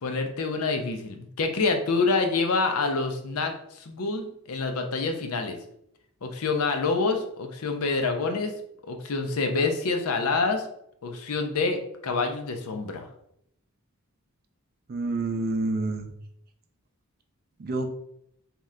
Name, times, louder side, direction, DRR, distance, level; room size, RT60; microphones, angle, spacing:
voice 1, 0.0-5.6 6.2-8.5 8.8-10.7 11.0-13.1, left 3 dB, 75° left, 5 dB, 0.6 m, -27 dB
voice 2, 14.9-16.1 17.6-17.9, right 2 dB, 45° right, 5 dB, 0.4 m, -28 dB
3.2 x 2.9 x 3.6 m, 0.74 s
head